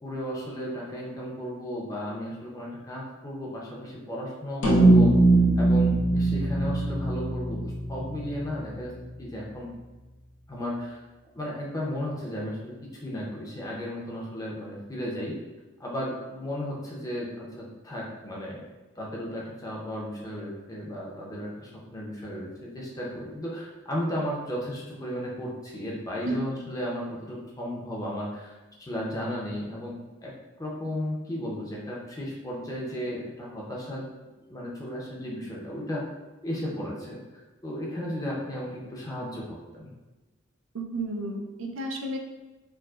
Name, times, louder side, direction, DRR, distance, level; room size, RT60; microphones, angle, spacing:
voice 1, 0.0-5.1 5.6-7.6 7.9-8.9 9.2-9.7 10.5-11.0 11.3-12.7 13.0-15.4 15.8-18.6 19.0-28.5 28.8-29.9 30.2-34.1 34.5-36.0 36.4-37.2 37.6-39.9, equal, 15° left, -3 dB, 0.5 m, -34 dB
sound 1, 4.6-9.1, right 2 dB, 80° left, 0.6 m, -22 dB
voice 2, 40.7-42.2, right 2 dB, 90° right, 2 dB, 0.5 m, -32 dB
4.5 x 2.1 x 2.3 m, 1.1 s
head